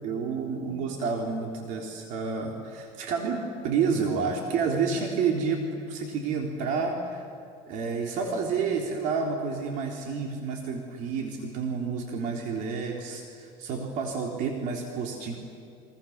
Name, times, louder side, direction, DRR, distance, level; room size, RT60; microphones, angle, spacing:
voice 1, 0.0-7.2 7.7-15.4, right 5 dB, 60° right, 1 dB, 3.6 m, -29 dB
29.0 x 24.5 x 7.3 m, 2.5 s
cardioid pair, 145°, 15 cm